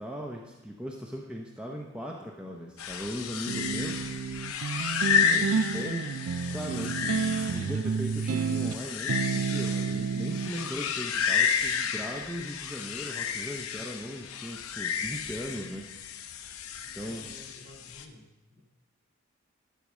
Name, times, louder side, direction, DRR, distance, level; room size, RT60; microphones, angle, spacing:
voice 1, 0.0-4.0 5.3-6.1 6.5-15.9 16.9-17.3, equal, 5° right, -1 dB, 0.7 m, -38 dB
sound 1, 2.8-18.0, left 7 dB, 80° left, 0.8 m, -32 dB
sound 2, 3.5-10.5, right 5 dB, 70° right, 0.4 m, -30 dB
voice 2, 4.8-5.3 16.8-18.2 18.5-18.6, left 2 dB, 45° right, -1 dB, 2.4 m, -52 dB
11.5 x 5.0 x 7.3 m, 1.1 s
head